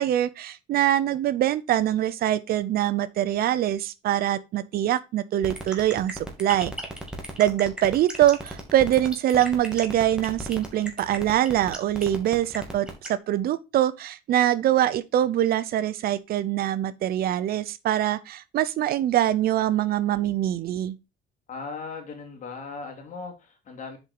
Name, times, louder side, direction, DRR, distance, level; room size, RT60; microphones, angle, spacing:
voice 1, 0.0-6.7 7.4-21.0, right 12 dB, 65° right, 0.7 m, -24 dB
sound 1, 5.4-13.1, right 1 dB, 5° right, 2.4 m, -35 dB
voice 2, 21.5-24.0, left 4 dB, 50° left, 3.1 m, -38 dB
7.4 x 5.3 x 4.8 m
cardioid pair, 110°, 17 cm